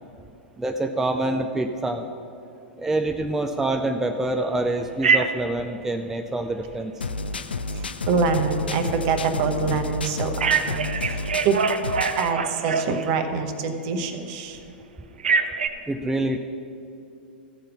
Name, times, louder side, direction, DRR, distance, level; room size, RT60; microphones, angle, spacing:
voice 1, 0.6-2.1 2.8-6.9 15.9-16.4, right 2 dB, 5° right, 4 dB, 0.5 m, -26 dB
Telephone, 5.0-5.5 10.4-13.3 15.2-15.7, right 5 dB, 75° right, 0.6 m, -24 dB
sound 1, 7.0-12.3, left 3 dB, 80° left, 0.5 m, -31 dB
voice 2, 8.1-11.6 12.1-14.6, right 5 dB, 45° right, 6 dB, 1.0 m, -25 dB
14.5 x 5.1 x 5.7 m, 2.7 s
figure-of-eight pair, 100°, 5 cm